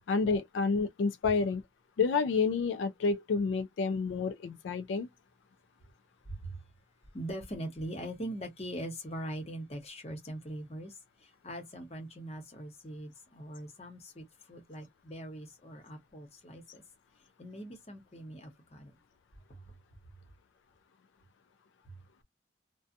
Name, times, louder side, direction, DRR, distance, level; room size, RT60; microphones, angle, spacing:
voice 1, 0.1-1.6 2.0-5.1, left 4 dB, 90° left, 0.3 m, -29 dB
voice 2, 7.1-10.9 11.2-16.8 17.4-18.9 19.5-19.6, right 1 dB, 35° left, 0.9 m, -42 dB
2.6 x 2.1 x 2.5 m
head